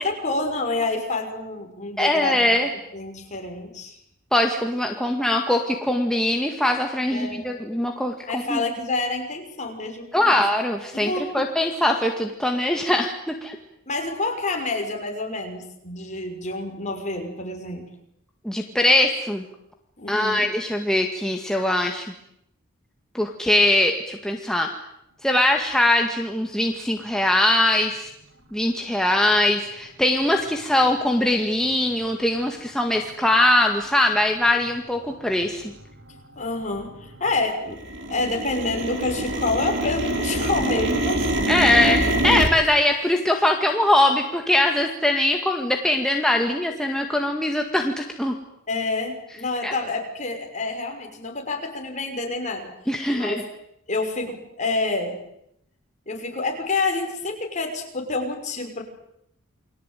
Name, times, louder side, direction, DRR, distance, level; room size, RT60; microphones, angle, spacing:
voice 1, 0.0-2.5 2.9-4.0 7.1-7.5 8.3-10.4 10.9-11.5 13.9-17.8 20.0-20.5 36.4-37.8 38.1-41.3 48.7-52.7 53.1-53.4 53.9-55.2 56.1-58.8, left 3 dB, 35° left, 2 dB, 6.0 m, -28 dB
voice 2, 2.0-2.7 4.3-8.6 10.1-13.6 18.4-19.4 20.1-22.1 23.1-24.7 25.2-28.1 28.5-35.6 41.5-48.4 49.6-49.7 52.9-53.4, left 1 dB, 5° left, 2 dB, 1.9 m, -21 dB
sound 1, 31.6-31.7 32.4-32.5 33.1-33.4 33.9-34.0 34.2-34.8 35.0-37.4 37.7-42.5, right 1 dB, 55° right, 3.4 m, -26 dB
29.0 x 22.0 x 9.2 m, 0.78 s
head